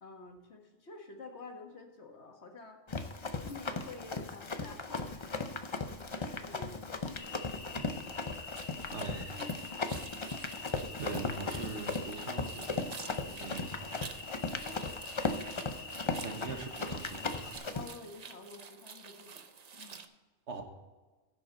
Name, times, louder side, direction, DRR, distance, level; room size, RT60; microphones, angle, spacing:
voice 1, 0.0-3.1 3.4-5.5 6.2-7.3 8.7-10.1 13.2-13.5 14.3-14.7 17.7-19.4 19.7-20.0, left 3 dB, 70° left, 2 dB, 1.9 m, -50 dB
Run, 2.9-17.9, left 3 dB, 30° left, 0.6 m, -37 dB
Cricket, 7.2-17.6, left 4 dB, 55° left, 1.2 m, -47 dB
sound 1, 8.6-20.1, right 6 dB, 45° right, 0.7 m, -50 dB
voice 2, 8.9-9.4 11.0-12.9 13.4-14.1 15.7-15.9 16.2-17.6 20.5-20.6, right 4 dB, 80° right, 4 dB, 1.7 m, -42 dB
15.5 x 7.0 x 4.1 m, 1.3 s
omnidirectional pair, 1.2 m